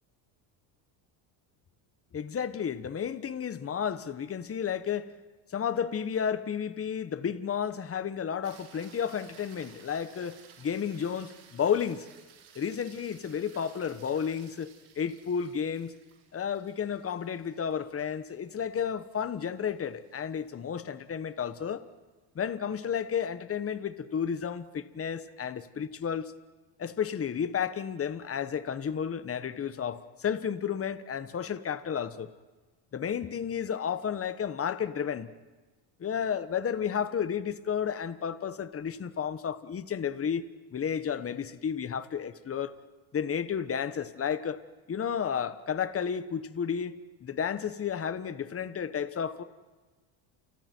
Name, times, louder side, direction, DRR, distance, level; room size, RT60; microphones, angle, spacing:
voice 1, 2.1-5.1 5.5-12.1 12.5-14.7 14.9-15.9 16.3-21.8 22.3-26.3 26.8-32.3 32.9-35.3 36.0-40.4 40.7-42.8 43.1-44.6 44.9-49.4, left 7 dB, 25° left, 1.2 m, -32 dB
sound 1, 8.4-20.8 25.3-25.4, right 8 dB, 80° right, 5.8 m, -57 dB
29.5 x 29.5 x 4.6 m
supercardioid pair, 95°, 50 cm